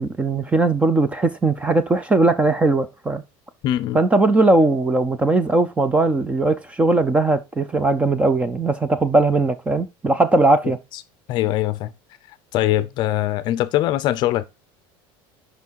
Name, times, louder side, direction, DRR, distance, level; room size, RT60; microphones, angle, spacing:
voice 1, 0.0-3.2 3.9-10.8, right 2 dB, 10° right, 0.5 m, -19 dB
voice 2, 3.6-4.0 10.6-10.7 11.3-11.9 12.5-14.4, left 14 dB, 40° left, 0.6 m, -22 dB
6.0 x 5.6 x 4.5 m
cardioid pair, 175°, 12 cm